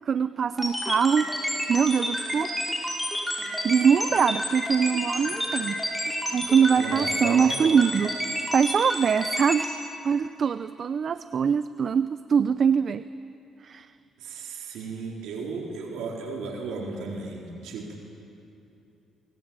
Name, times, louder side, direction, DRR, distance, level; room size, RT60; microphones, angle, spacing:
voice 1, 0.1-1.3 1.7-2.5 3.6-5.8 6.3-8.2 8.5-9.7 10.0-13.0 13.6-13.9, right 6 dB, 45° right, 13 dB, 0.6 m, -23 dB
sound 1, 0.6-9.7, equal, 10° left, 5.7 m, -29 dB
voice 2, 6.8-7.5 14.2-18.0, right 4 dB, 90° right, -1 dB, 4.3 m, -35 dB
27.0 x 23.0 x 9.0 m, 2.8 s
cardioid pair, 115°, 0 cm